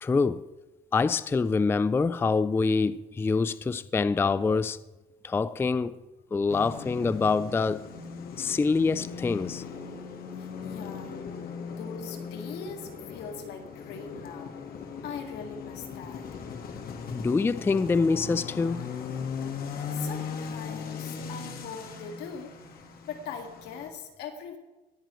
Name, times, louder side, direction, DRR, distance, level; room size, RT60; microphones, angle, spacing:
voice 1, 0.0-0.4 0.9-4.8 5.2-5.9 6.3-7.9 8.4-9.6 17.1-18.8, left 4 dB, 15° left, 0.3 m, -25 dB
sound 1, 6.5-23.9, left 6 dB, 60° left, 1.6 m, -38 dB
voice 2, 10.4-11.3 11.7-14.5 15.0-16.2 19.6-22.8 23.1-24.6, left 6 dB, 80° left, 2.0 m, -41 dB
19.5 x 9.2 x 3.1 m
cardioid pair, 110°, 17 cm